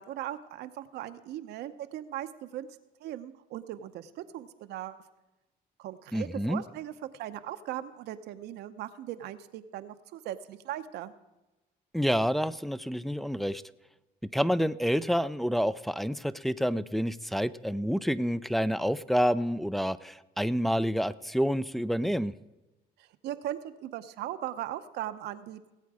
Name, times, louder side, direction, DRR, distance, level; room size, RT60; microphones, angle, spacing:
voice 1, 0.0-2.7 3.0-5.0 5.8-11.1 23.0-25.6, right 12 dB, 80° right, 9 dB, 0.8 m, -39 dB
voice 2, 6.1-6.6 11.9-13.6 14.3-22.3, equal, ahead, 14 dB, 0.4 m, -28 dB
18.5 x 8.4 x 4.8 m, 1.0 s
cardioid pair, 110°, 17 cm